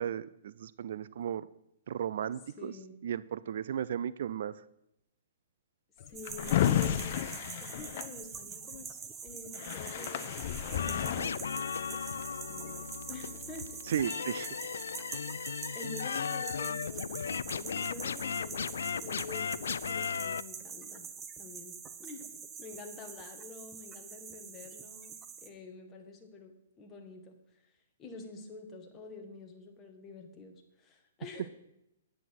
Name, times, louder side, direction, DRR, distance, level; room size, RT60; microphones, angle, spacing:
voice 1, 0.0-1.4 1.9-2.7 3.0-4.5 13.9-14.5, right 9 dB, 60° right, 17 dB, 0.4 m, -35 dB
voice 2, 2.6-3.0 6.0-13.8 15.7-21.1 21.4-21.8 22.0-25.1 25.4-26.5 26.8-27.4 28.0-31.5, left 3 dB, 20° left, 3 dB, 1.8 m, -48 dB
Drawer open or close, 6.0-8.8 9.3-9.4 9.5-11.3, left 11 dB, 50° left, 0.8 m, -32 dB
sound 1, 6.1-25.5, right 6 dB, 15° right, 0.9 m, -45 dB
sound 2, 10.7-20.4, left 7 dB, 85° left, 0.4 m, -36 dB
10.0 x 9.6 x 5.9 m, 0.82 s
hypercardioid pair, 150°, 0 cm